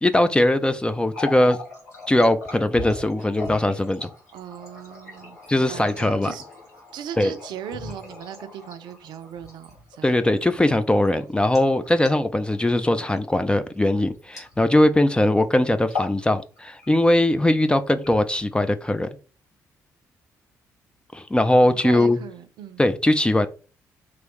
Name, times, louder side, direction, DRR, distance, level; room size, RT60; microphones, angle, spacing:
voice 1, 0.0-1.6 2.1-4.1 5.5-6.3 7.2-7.3 10.0-19.1 21.1-22.2 22.8-23.5, left 1 dB, 10° left, 0.4 m, -20 dB
Water tap faucet, 0.9-15.0 15.2-15.5 15.8-16.2 16.6-17.2 17.9-18.6, left 3 dB, 85° left, 0.9 m, -39 dB
voice 2, 4.3-6.4 6.9-10.2 21.6-22.8, right 9 dB, 60° right, 0.5 m, -38 dB
3.0 x 2.6 x 3.1 m
figure-of-eight pair, 40°, 9 cm